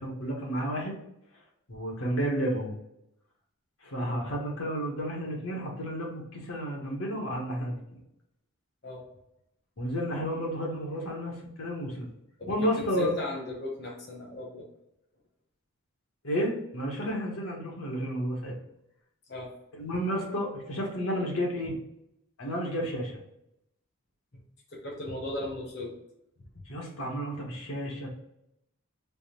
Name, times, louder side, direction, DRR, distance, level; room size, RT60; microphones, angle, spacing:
voice 1, 0.0-1.0 1.7-2.7 3.8-8.0 9.8-12.1 12.5-13.1 16.2-18.5 19.7-21.8 22.4-23.1 26.7-28.1, equal, 75° left, -2 dB, 1.0 m, -31 dB
voice 2, 12.4-14.6 19.3-19.5 24.7-25.9, left 1 dB, 50° left, -3 dB, 0.8 m, -36 dB
3.4 x 2.1 x 4.3 m, 0.81 s
head